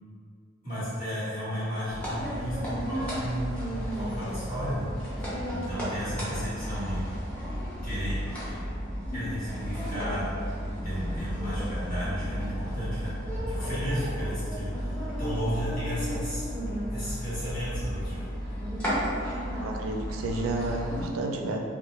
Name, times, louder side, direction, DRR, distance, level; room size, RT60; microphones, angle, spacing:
voice 1, 0.6-4.9 5.5-7.0 7.8-8.2 8.5-8.6 9.1-10.2 10.8-13.1 13.5-16.5 16.9-18.3, equal, 45° left, -13 dB, 1.2 m, -34 dB
sound 1, 1.9-21.1, equal, 5° left, 0.6 m, -33 dB
voice 2, 19.5-21.6, right 2 dB, 80° right, 1 dB, 0.3 m, -31 dB
2.3 x 2.1 x 3.0 m, 2.2 s
head